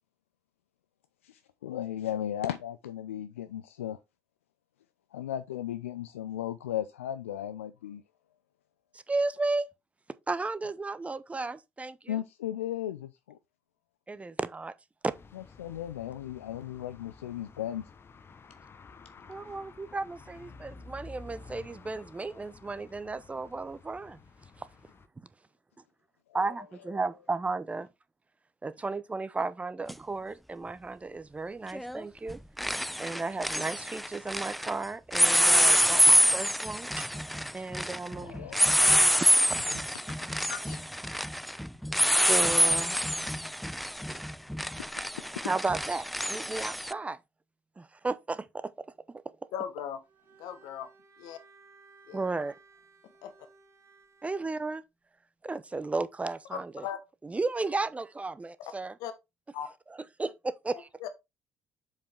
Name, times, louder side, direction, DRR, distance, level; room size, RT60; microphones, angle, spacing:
voice 1, 1.2-4.0 5.1-8.0 12.1-13.4 15.3-17.9 26.4-26.5 36.0-36.1 38.1-39.3 39.7-39.8 40.2-40.8 44.8-45.5, left 11 dB, 80° left, 0.4 m, -36 dB
voice 2, 8.9-9.7 10.3-12.2 14.1-14.7 15.0-15.1 19.3-24.2 24.6-24.7 25.2-25.3 26.3-27.9 28.6-32.4 33.0-37.1 37.4-38.6 41.9-43.0 44.1-44.2 45.4-47.2 47.8-49.2 52.1-52.6 54.2-54.8 55.4-56.9 57.2-58.9 59.9-60.9, right 3 dB, 20° right, 0.7 m, -34 dB
sound 1, 15.1-25.1, left 4 dB, 35° left, 0.9 m, -51 dB
sound 2, 29.9-30.0 31.7-32.0 32.3-34.7 35.1-46.9, equal, ahead, 0.3 m, -26 dB
voice 3, 49.5-50.0 50.4-50.9 51.2-51.4 52.1-52.3 53.2-53.3 56.5-57.0 58.6-58.7 59.0-59.1 59.5-59.7 61.0-61.1, left 9 dB, 65° left, 1.0 m, -38 dB
Bowed string instrument, 50.0-54.5, right 4 dB, 40° right, 2.1 m, -58 dB
7.3 x 5.2 x 3.6 m
figure-of-eight pair, 50°, 7 cm